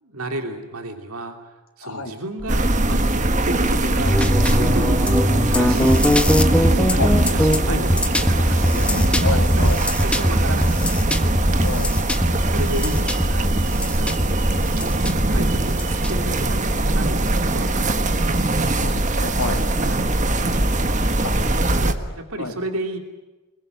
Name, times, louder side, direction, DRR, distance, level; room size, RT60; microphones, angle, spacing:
voice 1, 0.0-5.0 5.5-6.1 6.5-7.1 7.3-9.7 10.0-11.3 12.5-13.7 14.0-14.2 14.7-18.5 19.8-20.2 21.8-23.0, right 1 dB, 85° right, 5 dB, 2.9 m, -33 dB
voice 2, 1.8-2.1 7.0-7.1 7.7-7.8 8.7-9.8 11.6-11.9 18.3-18.4 18.8-19.6 21.2-21.3 22.4-22.5, left 2 dB, 70° left, 3 dB, 3.3 m, -29 dB
sound 1, 2.4-22.1, right 1 dB, 55° right, 3.6 m, -34 dB
sound 2, 2.5-21.9, right 1 dB, 35° right, 1.5 m, -21 dB
sound 3, 4.0-16.6, equal, 5° left, 1.4 m, -22 dB
26.0 x 21.5 x 9.3 m, 1.1 s
head